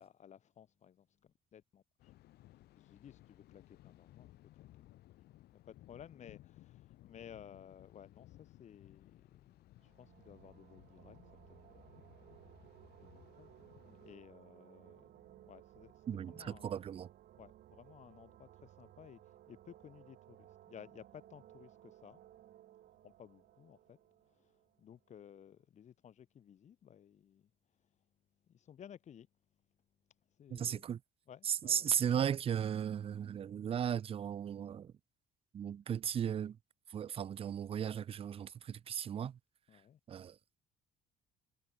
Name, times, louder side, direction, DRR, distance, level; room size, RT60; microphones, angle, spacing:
voice 1, 0.0-2.1 2.8-4.3 5.5-11.2 11.5-12.2 13.0-15.1 15.4-16.8 17.4-22.2 23.0-24.0 24.3-24.5 24.8-27.5 28.5-29.3 30.3-30.8 31.3-32.1 39.7-40.0, left 9 dB, 45° left, 1.0 m, -57 dB
Thunder, 2.0-14.2, left 15 dB, 70° left, 1.0 m, -60 dB
sound 1, 9.8-25.3, right 13 dB, 65° right, 2.9 m, -60 dB
voice 2, 16.1-17.1 30.5-31.0 31.4-34.9 35.5-36.6 36.9-39.4 40.1-40.4, right 9 dB, 35° right, 0.4 m, -36 dB
cardioid pair, 110°, 17 cm